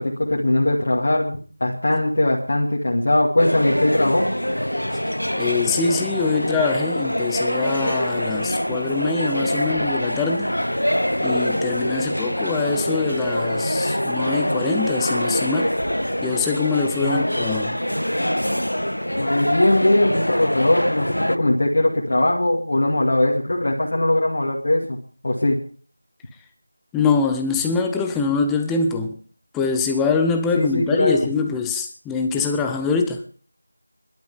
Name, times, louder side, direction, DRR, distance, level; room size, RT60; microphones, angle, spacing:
voice 1, 0.0-4.2 17.0-17.3 19.2-25.0 25.2-25.6 30.5-31.2, left 1 dB, 40° left, 2.4 m, -20 dB
sound 1, 3.4-21.4, equal, 90° left, 0.7 m, -24 dB
voice 2, 5.4-10.5 11.2-15.7 16.2-17.8 26.9-29.1 29.5-33.2, left 5 dB, 5° left, 0.7 m, -24 dB
25.5 x 12.0 x 3.6 m
figure-of-eight pair, 170°, 0 cm